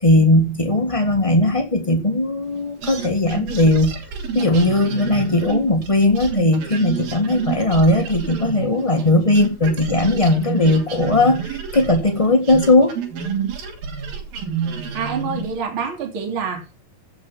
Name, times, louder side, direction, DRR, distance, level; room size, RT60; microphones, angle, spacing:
voice 1, 0.0-4.0 4.3-12.9, left 2 dB, 60° left, 0.3 m, -18 dB
sound 1, 2.8-9.1 9.4-15.6, right 6 dB, 85° right, 4.4 m, -29 dB
voice 2, 14.9-16.8, right 6 dB, 40° right, 3.6 m, -27 dB
15.5 x 7.2 x 5.8 m
omnidirectional pair, 4.0 m